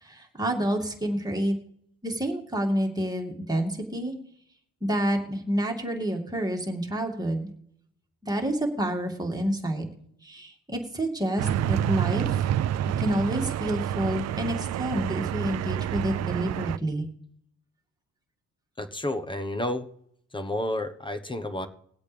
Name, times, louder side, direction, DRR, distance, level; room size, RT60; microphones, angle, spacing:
voice 1, 0.0-1.6 2.0-4.1 4.8-7.5 8.2-9.8 10.2-12.5 13.0-17.1, right 1 dB, 15° right, 1 dB, 2.4 m, -28 dB
sound 1, 11.4-16.8, right 11 dB, 60° right, 0.5 m, -28 dB
voice 2, 18.8-19.9 20.3-21.7, left 1 dB, 15° left, 9 dB, 1.1 m, -30 dB
21.0 x 8.1 x 3.5 m, 0.69 s
cardioid pair, 90°, 30 cm